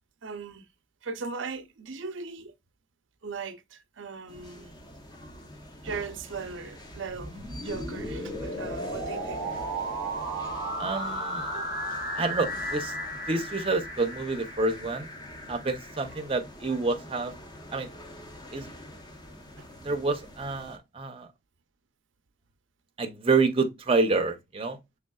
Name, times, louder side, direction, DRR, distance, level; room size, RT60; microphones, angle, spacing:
voice 1, 0.2-0.7 1.0-2.5 3.2-4.7 5.8-10.5 11.5-11.6 18.6-18.8 19.6-19.9, right 4 dB, 85° right, 0.6 m, -39 dB
sound 1, 4.3-20.8, left 1 dB, 20° left, 0.8 m, -46 dB
sound 2, 6.9-14.8, right 1 dB, 60° left, 3.0 m, -34 dB
voice 2, 10.8-11.5 12.2-12.9 13.3-15.1 15.5-17.3 17.7-17.9 18.5-18.7 19.8-21.3 23.0-24.8, right 3 dB, 30° right, 0.6 m, -28 dB
6.3 x 3.4 x 2.3 m
head